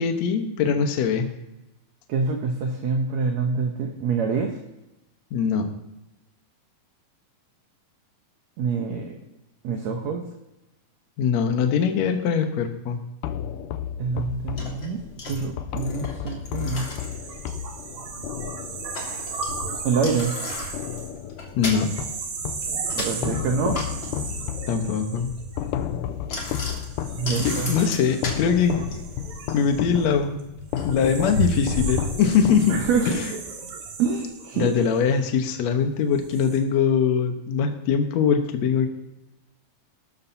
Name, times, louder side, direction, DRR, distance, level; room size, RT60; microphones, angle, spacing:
voice 1, 0.0-1.3 5.3-5.7 11.2-13.0 21.6-21.9 24.7-25.3 27.4-28.8 29.5-30.4 30.9-33.3 34.6-38.9, left 6 dB, 65° left, 5 dB, 1.9 m, -22 dB
voice 2, 2.1-4.6 8.6-9.1 9.6-10.2 14.0-15.0 15.3-16.9 19.8-20.3 23.0-23.8 27.2-27.7 32.7-33.2 34.0-34.9, right 5 dB, 70° right, 2 dB, 1.8 m, -26 dB
sound 1, 13.2-20.4 20.7-22.8 23.2-33.1, left 10 dB, 85° left, 1.9 m, -33 dB
Bicycle, 14.0-32.9, left 1 dB, 40° left, 2.0 m, -35 dB
sound 2, 17.0-26.2 26.8-35.6 36.1-36.6, right 5 dB, 85° right, 3.8 m, -36 dB
17.5 x 13.0 x 2.8 m, 0.96 s
omnidirectional pair, 4.4 m